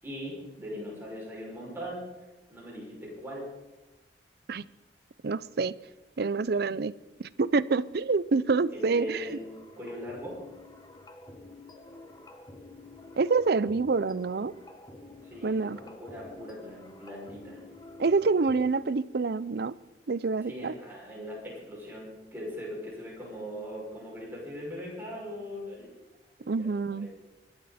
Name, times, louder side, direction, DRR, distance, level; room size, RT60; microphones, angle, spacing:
voice 1, 0.0-2.1 2.5-3.5 8.7-10.4 15.2-17.6 20.4-25.9 26.4-27.1, equal, 10° right, 6.2 m, -40 dB
voice 2, 5.2-5.8 6.2-6.9 7.2-9.3 13.2-14.5 15.4-15.8 18.0-19.8 20.1-20.7 26.5-27.1, right 4 dB, 60° right, 0.5 m, -27 dB
sound 1, 9.2-18.9, left 2 dB, 20° left, 1.4 m, -49 dB
24.0 x 12.0 x 4.3 m
head